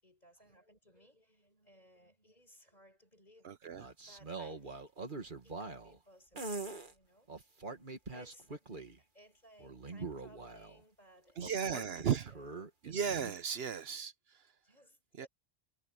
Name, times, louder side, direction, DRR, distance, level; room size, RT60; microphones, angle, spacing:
voice 1, 0.0-3.5 4.1-4.8 5.4-7.3 7.7-8.9 9.1-12.7 13.5-13.7 14.6-15.3, equal, 40° left, 6.4 m, -62 dB
voice 2, 3.4-3.9 11.4-12.3 12.8-14.1 15.2-15.3, right 7 dB, 65° right, 1.0 m, -35 dB
sound 1, 3.6-6.0 6.3-6.9 7.3-9.0 9.6-10.8 11.4-13.3, right 3 dB, 50° right, 2.1 m, -44 dB
omnidirectional pair, 1.1 m